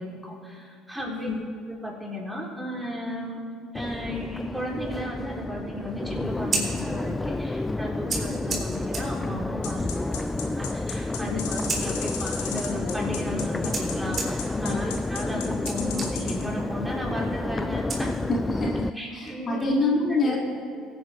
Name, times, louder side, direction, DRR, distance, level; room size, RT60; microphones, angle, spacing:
voice 1, 0.0-1.3 1.7-3.4 3.7-18.3 18.9-19.7 20.2-20.4, left 1 dB, 10° right, -3 dB, 4.0 m, -35 dB
Crowd, 3.7-18.9, left 2 dB, 15° left, 0.4 m, -30 dB
Scissors, 6.3-18.6, right 3 dB, 35° right, 3.5 m, -38 dB
sound 1, 9.6-16.4, left 7 dB, 75° left, 1.9 m, -35 dB
voice 2, 11.2-11.6 14.5-14.9 18.3-20.4, left 2 dB, 40° left, -1 dB, 2.0 m, -27 dB
22.0 x 8.9 x 3.7 m, 2.2 s
hypercardioid pair, 60°, 0 cm